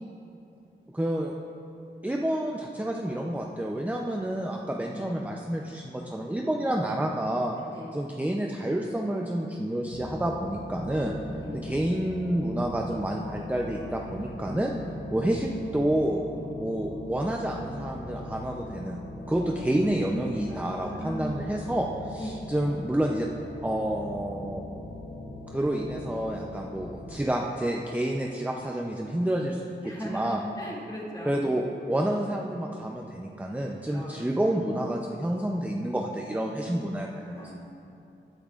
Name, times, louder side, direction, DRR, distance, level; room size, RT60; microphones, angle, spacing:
voice 1, 0.9-1.3 2.0-7.5 7.9-11.2 11.5-14.7 15.1-16.2 16.6-19.0 19.3-23.3 23.6-24.6 25.5-30.4 31.2-37.5, right 1 dB, 10° right, 1 dB, 0.5 m, -29 dB
voice 2, 3.9-4.5 4.9-5.1 7.7-8.0 11.2-11.6 13.6-14.7 19.3-19.9 20.5-21.6 22.2-22.4 29.8-31.4 33.9-34.2 37.3-37.5, equal, 20° left, -5 dB, 2.4 m, -40 dB
sound 1, 9.9-27.1, left 1 dB, 70° left, 1.0 m, -40 dB
15.5 x 8.8 x 2.5 m, 2.7 s
wide cardioid pair, 70°, 20 cm